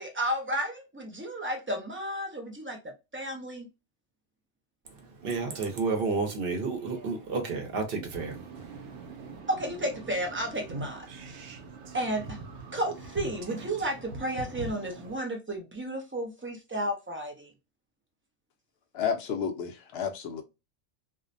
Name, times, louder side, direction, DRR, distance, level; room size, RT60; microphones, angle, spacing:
voice 1, 0.0-2.8 3.1-3.7 9.5-11.5 11.9-12.4 12.7-17.5, right 1 dB, 20° right, 0.3 m, -32 dB
voice 2, 4.8-9.4, right 4 dB, 55° right, 0.9 m, -32 dB
sound 1, 8.1-15.2, right 3 dB, 90° right, 0.9 m, -42 dB
voice 3, 18.9-20.4, left 7 dB, 65° left, 0.8 m, -31 dB
2.5 x 2.1 x 2.5 m
omnidirectional pair, 1.2 m